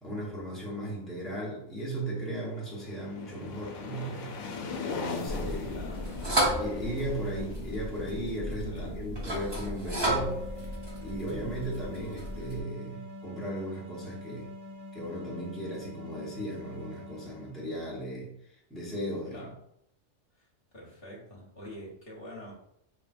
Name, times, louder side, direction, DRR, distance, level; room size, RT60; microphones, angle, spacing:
voice 1, 0.0-5.7 6.6-10.4 11.0-14.5 14.9-18.3 18.7-19.5, right 1 dB, ahead, -6 dB, 1.1 m, -36 dB
sound 1, 2.5-9.2, left 4 dB, 85° left, 1.0 m, -40 dB
sound 2, 5.3-12.6, right 1 dB, 25° right, 1.0 m, -33 dB
voice 2, 5.7-6.1 8.7-9.0 19.3-19.5 20.3-20.5 20.7-22.5, left 1 dB, 55° left, -4 dB, 1.3 m, -45 dB
sound 3, 9.9-18.0, left 2 dB, 55° right, 1.4 m, -45 dB
5.1 x 3.1 x 2.5 m, 0.77 s
omnidirectional pair, 1.2 m